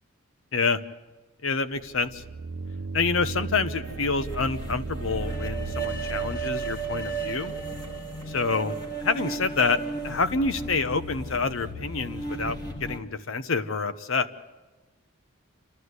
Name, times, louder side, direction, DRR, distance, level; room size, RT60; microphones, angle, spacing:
voice 1, 1.4-2.2 2.9-7.5 8.3-8.7 9.0-9.8 10.0-14.3, left 4 dB, 70° left, 12 dB, 0.9 m, -27 dB
sound 1, 1.7-6.8, right 4 dB, 65° right, 0.6 m, -36 dB
sound 2, 3.8-13.0, right 3 dB, 20° left, 1.7 m, -34 dB
28.0 x 13.0 x 8.1 m, 1.2 s
head